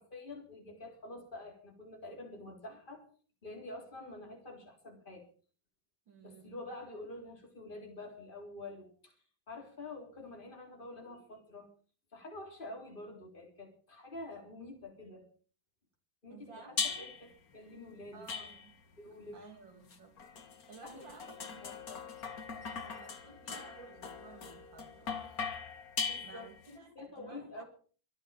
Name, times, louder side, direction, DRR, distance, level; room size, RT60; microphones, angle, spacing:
voice 1, 0.0-3.1 3.4-5.3 6.2-9.2 9.5-11.7 12.1-15.3 16.2-18.3 19.0-19.4 20.8-21.1 21.4-22.0 26.1-26.5 27.0-27.6, left 2 dB, 25° left, 4.1 m, -47 dB
voice 2, 6.1-6.6 16.3-17.1 18.1-18.7 19.3-20.2 20.7-21.8 22.5-25.4 26.2-27.6, right 4 dB, 75° right, 3.5 m, -54 dB
sound 1, 16.8-17.3 18.3-18.9 19.9-26.7, left 5 dB, 50° left, 2.1 m, -40 dB
25.5 x 8.8 x 5.8 m
omnidirectional pair, 2.0 m